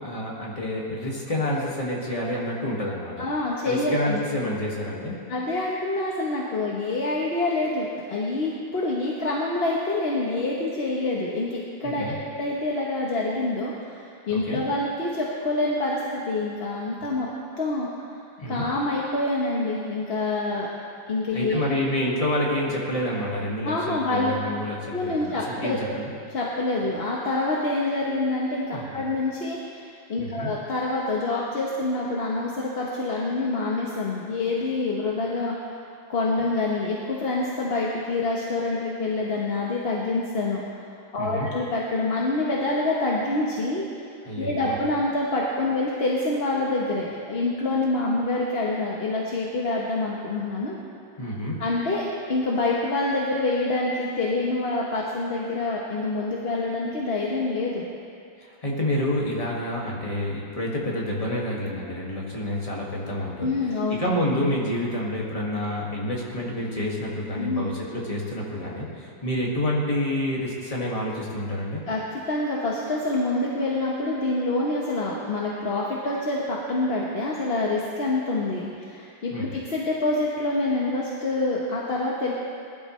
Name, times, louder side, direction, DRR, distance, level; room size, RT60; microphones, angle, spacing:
voice 1, 0.0-3.2 3.6-5.2 11.8-12.1 14.3-14.6 18.4-18.6 21.3-26.1 28.7-28.8 30.2-30.5 41.2-41.5 44.3-44.8 51.2-51.6 58.4-63.5 63.9-71.8 79.3-79.5, left 1 dB, 20° left, -4 dB, 2.0 m, -28 dB
voice 2, 3.2-4.2 5.3-17.3 17.6-17.9 18.5-20.7 21.1-21.6 23.6-24.4 24.9-25.8 26.3-29.8 30.1-35.6 36.1-40.6 41.1-43.8 44.4-50.8 51.6-52.0 52.3-57.9 63.4-64.0 67.3-67.7 71.9-72.0 72.3-82.3, left 2 dB, 40° left, -4 dB, 1.1 m, -26 dB
20.0 x 12.0 x 3.2 m, 2.4 s
omnidirectional pair, 2.1 m